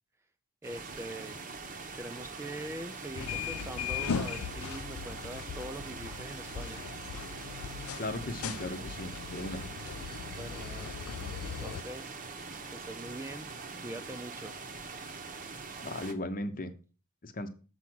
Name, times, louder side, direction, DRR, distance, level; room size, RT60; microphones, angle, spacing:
voice 1, 0.6-1.4 1.9-6.8 10.3-10.9 11.6-12.2 12.7-13.5 13.8-14.6, right 1 dB, 10° right, 9 dB, 0.4 m, -43 dB
sound 1, 0.6-16.1, right 4 dB, 35° right, 0.8 m, -43 dB
sound 2, 3.2-11.8, left 7 dB, 80° left, 0.5 m, -39 dB
voice 2, 8.0-9.7 15.8-16.7 17.2-17.5, left 1 dB, 40° left, 9 dB, 0.9 m, -37 dB
7.1 x 4.8 x 6.1 m, 0.36 s
head